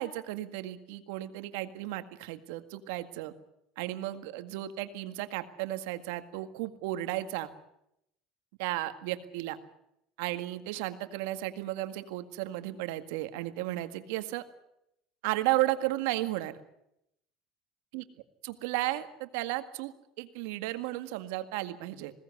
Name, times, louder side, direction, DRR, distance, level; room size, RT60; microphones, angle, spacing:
voice 1, 0.0-3.3 3.8-7.5 8.6-9.6 10.2-14.4 15.2-16.5 17.9-18.0 18.4-22.1, right 16 dB, 80° right, 10 dB, 1.8 m, -34 dB
21.0 x 17.5 x 9.7 m, 0.80 s
supercardioid pair, 125°, 0 cm